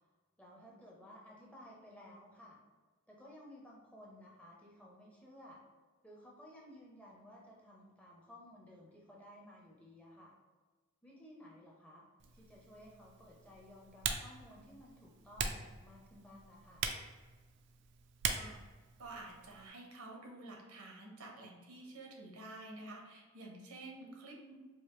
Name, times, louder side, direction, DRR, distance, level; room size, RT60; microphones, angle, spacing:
voice 1, 0.4-2.6 3.1-5.6 6.0-10.3 11.0-12.0 12.3-16.8, left 1 dB, 5° left, -3 dB, 0.6 m, -56 dB
Typing, 12.2-19.7, right 6 dB, 50° right, 0.4 m, -43 dB
voice 2, 19.0-24.5, right 2 dB, 80° right, 0 dB, 0.9 m, -50 dB
4.8 x 2.5 x 3.0 m, 1.4 s
head